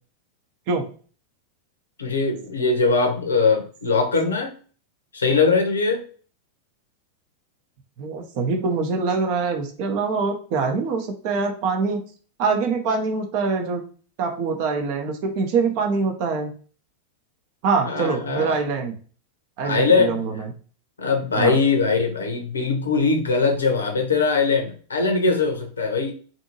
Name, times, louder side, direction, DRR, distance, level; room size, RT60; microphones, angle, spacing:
voice 1, 2.0-4.5 5.1-6.0 17.8-18.6 19.6-20.2 21.0-26.1, left 4 dB, 70° left, 4 dB, 0.6 m, -21 dB
voice 2, 8.0-12.0 12.4-13.8 14.2-16.5 17.6-19.0 19.6-20.5 21.4-21.6, right 4 dB, 45° right, 4 dB, 0.6 m, -24 dB
2.6 x 2.6 x 2.7 m, 0.41 s
figure-of-eight pair, 90°, 0 cm